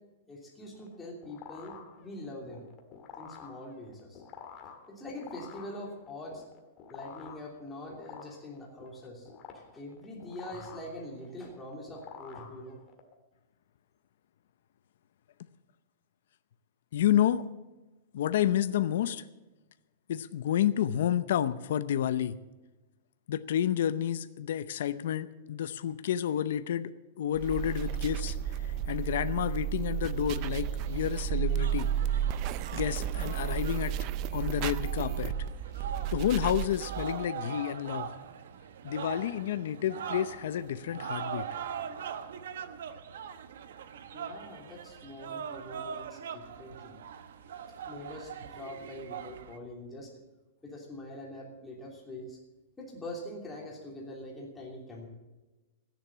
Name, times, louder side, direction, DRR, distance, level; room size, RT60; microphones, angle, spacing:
voice 1, 0.3-2.6 3.2-4.2 4.9-6.4 6.9-9.3 9.5-12.8 44.1-46.9 47.8-50.1 50.6-52.4 52.8-55.1, left 1 dB, 10° left, -3 dB, 3.0 m, -44 dB
sound 1, 0.7-13.1, left 7 dB, 25° left, 1.7 m, -49 dB
voice 2, 16.9-17.4 18.1-19.2 20.1-22.4 23.3-26.9 27.2-31.9 32.7-34.0 34.3-35.3 36.1-38.1 38.8-41.5, left 10 dB, 65° left, 12 dB, 0.7 m, -30 dB
sound 2, 27.3-37.3, right 10 dB, 30° right, 0.5 m, -32 dB
sound 3, 30.8-49.6, right 7 dB, 70° right, 1.1 m, -42 dB
14.0 x 10.0 x 7.4 m, 1.1 s
supercardioid pair, 175°, 0 cm